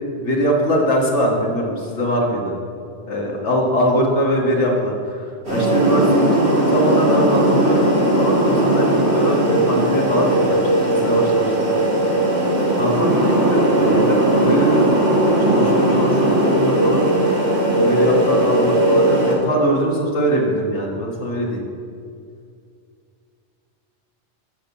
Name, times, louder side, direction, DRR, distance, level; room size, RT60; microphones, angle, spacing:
voice 1, 0.2-2.5 3.1-10.6 10.9-11.8 12.7-15.1 15.4-17.1 17.8-21.6, equal, 75° left, -1 dB, 2.0 m, -22 dB
sound 1, 5.4-19.3, right 1 dB, 60° right, 3.1 m, -18 dB
13.0 x 5.2 x 7.1 m, 2.4 s
omnidirectional pair, 1.2 m